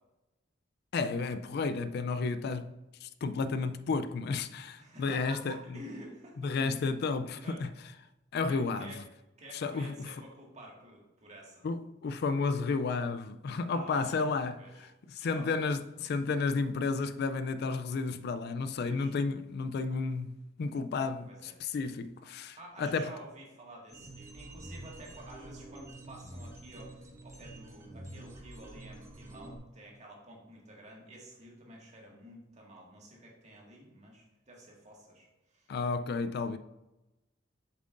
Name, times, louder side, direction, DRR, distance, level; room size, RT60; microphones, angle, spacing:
voice 1, 0.9-2.7 3.0-5.6 6.4-7.7 8.3-9.0 9.5-10.1 11.6-23.1 35.7-36.6, left 4 dB, 60° left, 0.3 m, -32 dB
voice 2, 4.8-6.9 7.3-7.6 8.5-9.0 9.4-11.7 13.7-14.3 14.6-14.9 15.2-15.5 18.8-19.2 21.3-21.6 22.6-35.7, right 1 dB, 40° right, 1.8 m, -50 dB
sound 1, 23.9-29.6, right 2 dB, 15° right, 1.1 m, -48 dB
7.5 x 7.2 x 2.5 m
head